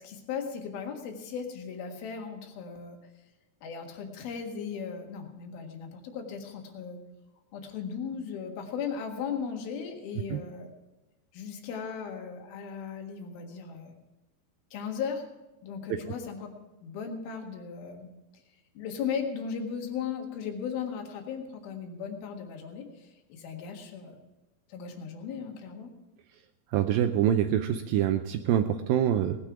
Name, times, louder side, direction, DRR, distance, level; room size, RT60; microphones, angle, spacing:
voice 1, 0.0-3.0 3.6-7.0 7.5-10.7 11.3-14.0 14.7-15.3 15.6-16.5 16.8-18.4 18.8-24.2 24.7-25.9, left 6 dB, 70° left, 3 dB, 3.4 m, -37 dB
voice 2, 26.7-29.4, right 10 dB, 80° right, 7 dB, 2.2 m, -25 dB
18.0 x 9.9 x 4.8 m, 1.1 s
omnidirectional pair, 4.6 m